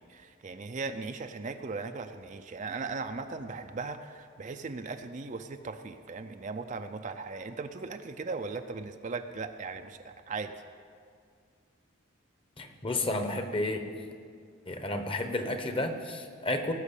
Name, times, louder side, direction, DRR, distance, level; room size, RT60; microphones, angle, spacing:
voice 1, 0.0-10.5, right 4 dB, 35° right, 7 dB, 0.5 m, -38 dB
voice 2, 12.6-13.8 14.7-16.7, left 1 dB, 25° left, 6 dB, 1.0 m, -31 dB
18.0 x 6.3 x 8.3 m, 2.1 s
head